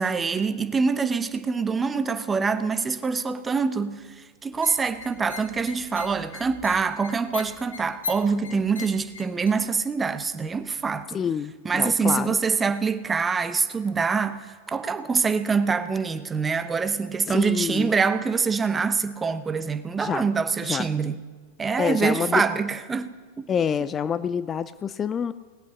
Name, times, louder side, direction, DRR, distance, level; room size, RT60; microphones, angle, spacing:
voice 1, 0.0-4.0 4.4-11.2 11.6-21.2 21.6-23.1, right 5 dB, 20° right, 0.8 m, -25 dB
sound 1, 4.5-9.5, left 4 dB, 80° left, 1.7 m, -39 dB
voice 2, 11.1-12.3 17.3-17.9 20.0-20.3 20.6-20.9 21.8-22.4 23.5-25.3, left 7 dB, 25° left, 0.4 m, -27 dB
19.0 x 8.5 x 6.4 m
figure-of-eight pair, 90°, 0 cm